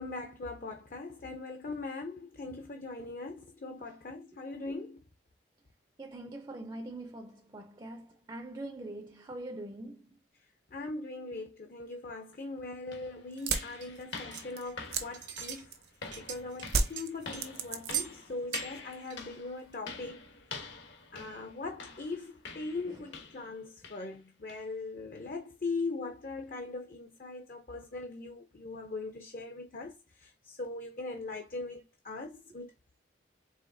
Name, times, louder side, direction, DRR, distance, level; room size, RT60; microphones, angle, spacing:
voice 1, 0.0-5.0 10.7-15.7 16.2-20.2 21.1-32.7, left 3 dB, 45° left, 0.5 m, -40 dB
voice 2, 6.0-10.1 22.9-23.0, right 1 dB, 20° right, 0.4 m, -43 dB
sound 1, 12.3-12.4 12.9-23.6 23.8-24.1 24.5-24.7 25.2-25.3 25.8-25.9, left 4 dB, 75° left, 1.2 m, -46 dB
sound 2, 13.3-16.0 16.7-18.2 18.5-19.1, right 4 dB, 60° right, 0.7 m, -34 dB
sound 3, 13.4-14.9 15.1-15.6 15.9-17.5 17.9-18.2 18.5-18.8 19.0-19.2 19.7-19.8, right 10 dB, 80° right, 1.1 m, -40 dB
4.9 x 3.4 x 2.6 m
head